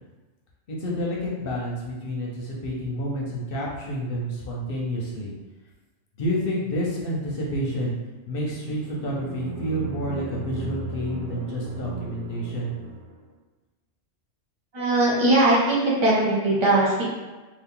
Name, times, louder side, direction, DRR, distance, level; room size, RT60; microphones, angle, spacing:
voice 1, 0.7-5.3 6.2-7.9 8.3-12.7, equal, 55° left, -3 dB, 0.7 m, -29 dB
sound 1, 8.4-13.3, right 3 dB, 65° right, 0.8 m, -36 dB
voice 2, 14.7-17.0, right 2 dB, 40° right, -6 dB, 0.4 m, -20 dB
2.8 x 2.4 x 3.6 m, 1.2 s
omnidirectional pair, 1.3 m